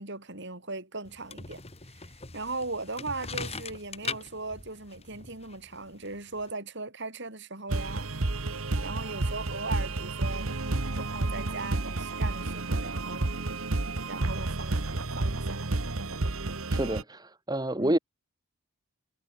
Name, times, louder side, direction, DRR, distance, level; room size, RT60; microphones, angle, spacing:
voice 1, 0.0-1.6 2.0-8.1 8.8-10.5 10.9-13.3 14.0-15.7 17.8-17.9, right 3 dB, 55° right, 6.5 m, -38 dB
sound 1, 1.1-6.5, left 4 dB, 30° left, 2.3 m, -41 dB
sound 2, 7.7-17.0, right 2 dB, 75° right, 1.5 m, -31 dB
voice 2, 16.7-18.0, right 1 dB, 20° right, 1.6 m, -28 dB
head